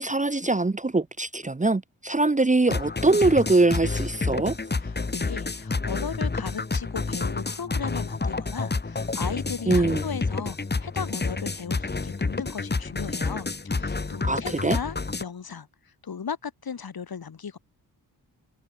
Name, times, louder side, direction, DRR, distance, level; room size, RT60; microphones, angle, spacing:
voice 1, 0.0-4.6 9.7-10.0 14.2-14.8, right 2 dB, 20° right, 1.2 m, -22 dB
sound 1, 2.7-15.2, left 3 dB, 25° left, 1.8 m, -29 dB
voice 2, 4.8-17.6, left 6 dB, 65° left, 7.5 m, -36 dB
wide cardioid pair, 90°, 39 cm